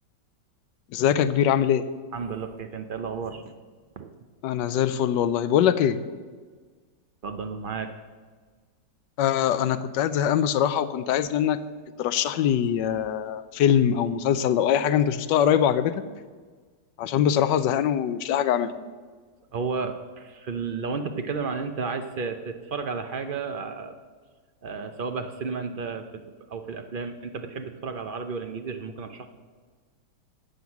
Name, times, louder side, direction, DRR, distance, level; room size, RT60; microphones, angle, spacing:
voice 1, 0.9-1.8 4.4-6.0 9.2-11.6 12.0-15.9 17.0-18.7, left 9 dB, 85° left, 12 dB, 1.3 m, -22 dB
voice 2, 2.1-3.4 4.0-4.1 7.2-7.9 19.5-24.0 24.6-29.3, right 5 dB, 80° right, 7 dB, 0.4 m, -32 dB
12.0 x 7.9 x 7.1 m, 1.5 s
omnidirectional pair, 1.9 m